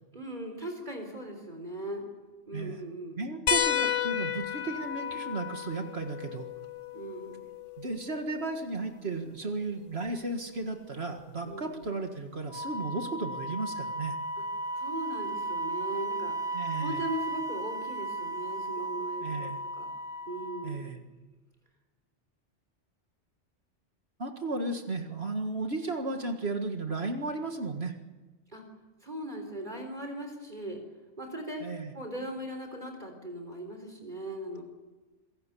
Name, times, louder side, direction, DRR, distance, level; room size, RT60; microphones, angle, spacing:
voice 1, 0.1-2.0 2.5-3.2 6.9-7.5 11.4-11.8 14.4-14.5 14.8-16.4 16.8-19.9 20.3-21.0 28.5-28.6 29.0-30.8 31.2-31.6 31.9-34.6, right 1 dB, 40° right, 4 dB, 4.0 m, -39 dB
voice 2, 3.2-6.5 7.8-14.2 16.5-17.1 19.2-19.6 20.6-21.0 24.2-27.9 31.6-31.9, right 3 dB, 60° right, 5 dB, 2.1 m, -34 dB
sound 1, 3.5-8.5 10.1-10.2 11.8-11.9, left 8 dB, 85° left, 1.3 m, -32 dB
Wind instrument woodwind instrument, 12.5-20.8, right 1 dB, 15° left, 1.4 m, -35 dB
27.0 x 16.5 x 8.5 m, 1.2 s
omnidirectional pair, 1.2 m